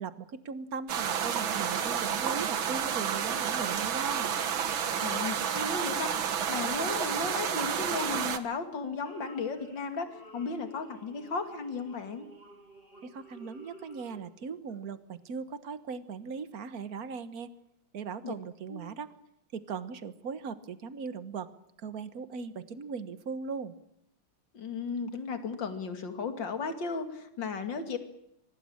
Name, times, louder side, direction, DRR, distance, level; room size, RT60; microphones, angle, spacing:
voice 1, 0.0-4.4 13.0-17.5 17.9-19.1 19.5-21.5 21.8-23.7, right 5 dB, 50° right, 12 dB, 1.6 m, -39 dB
sound 1, 0.9-8.4, right 8 dB, 70° right, 2.1 m, -30 dB
voice 2, 5.0-6.2 6.5-12.3 18.2-18.3 18.7-18.8 24.5-28.0, left 4 dB, 60° left, 7 dB, 3.0 m, -35 dB
sound 2, 9.0-14.4 14.7-14.8, right 1 dB, 25° left, 6.8 m, -53 dB
25.0 x 19.0 x 8.8 m, 0.81 s
omnidirectional pair, 2.3 m